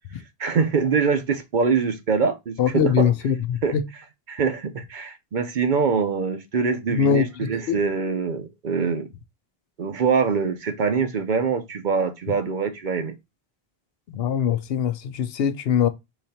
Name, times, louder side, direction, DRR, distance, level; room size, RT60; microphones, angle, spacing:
voice 1, 0.4-3.1 3.6-3.8 4.3-9.1 9.8-13.1, right 5 dB, 55° right, 0.8 m, -24 dB
voice 2, 2.6-3.8 6.9-7.2 7.7-7.8 14.1-15.9, left 8 dB, 75° left, 0.8 m, -22 dB
4.0 x 3.1 x 4.1 m
omnidirectional pair, 1.0 m